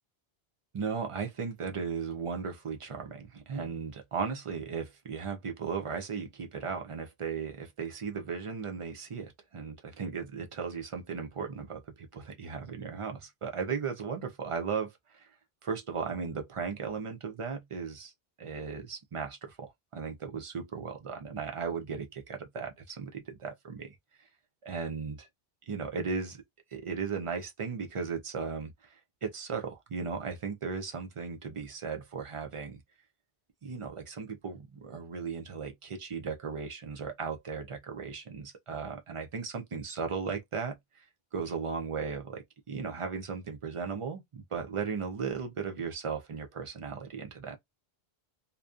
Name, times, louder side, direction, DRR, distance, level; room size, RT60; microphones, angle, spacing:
voice 1, 0.7-15.3 15.6-18.1 18.4-23.9 24.6-25.3 25.7-26.4 26.7-32.8 33.6-41.1 41.3-47.6, right 5 dB, 55° right, 0.3 m, -36 dB
2.5 x 2.1 x 2.3 m
omnidirectional pair, 1.0 m